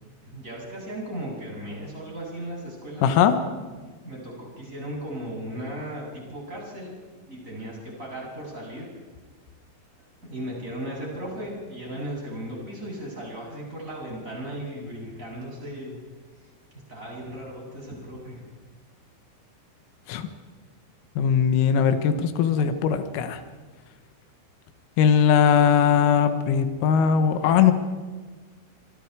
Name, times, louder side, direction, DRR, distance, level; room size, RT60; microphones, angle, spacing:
voice 1, 0.2-3.1 4.0-7.0 7.3-8.9 10.2-16.0 16.3-16.5 16.9-18.4, right 1 dB, 15° right, -3 dB, 8.2 m, -36 dB
voice 2, 3.0-3.3 20.1-20.3 21.2-23.4 25.0-27.7, left 7 dB, 90° left, 8 dB, 4.1 m, -20 dB
29.5 x 24.0 x 4.8 m, 1.4 s
omnidirectional pair, 5.9 m